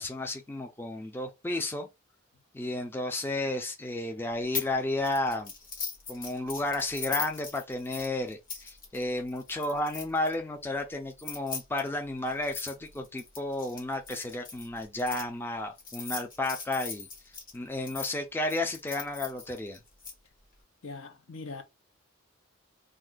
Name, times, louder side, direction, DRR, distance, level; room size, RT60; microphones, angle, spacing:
voice 1, 0.0-1.9 2.5-5.5 6.1-17.1 17.5-19.8, left 2 dB, 10° left, 0.4 m, -32 dB
sound 1, 4.5-4.7 5.0-10.3 11.1-15.2 15.8-18.1 18.5-20.1, left 5 dB, 45° left, 1.1 m, -39 dB
voice 2, 20.8-21.6, left 3 dB, 70° left, 0.7 m, -41 dB
2.5 x 2.4 x 3.7 m
head